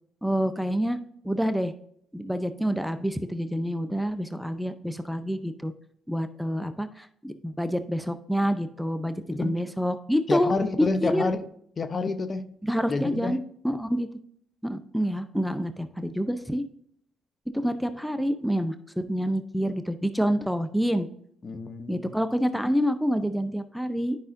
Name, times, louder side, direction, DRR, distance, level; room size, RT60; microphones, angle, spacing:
voice 1, 0.2-1.0 1.2-1.7 2.1-5.7 6.1-10.5 10.8-11.2 12.6-14.1 14.6-16.6 17.5-21.1 21.9-24.2, equal, ahead, 10 dB, 0.6 m, -27 dB
voice 2, 9.3-9.6 10.3-11.5 11.8-12.4 12.9-13.4 21.4-22.2, left 3 dB, 40° left, 10 dB, 0.8 m, -28 dB
10.5 x 5.5 x 2.5 m, 0.69 s
supercardioid pair, 60°, 0 cm